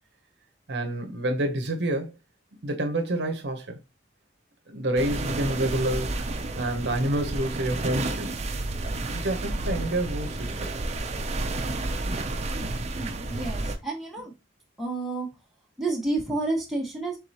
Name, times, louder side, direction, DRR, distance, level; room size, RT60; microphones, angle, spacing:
voice 1, 0.7-2.1 2.6-3.8 4.7-6.2 6.6-8.4 8.9-10.7, right 1 dB, 60° right, 0.8 m, -28 dB
sound 1, 5.0-13.8, right 2 dB, 35° right, 0.5 m, -31 dB
voice 2, 12.9-14.3 14.8-15.3 15.8-17.2, right 2 dB, ahead, 1.3 m, -30 dB
4.7 x 3.8 x 2.8 m
head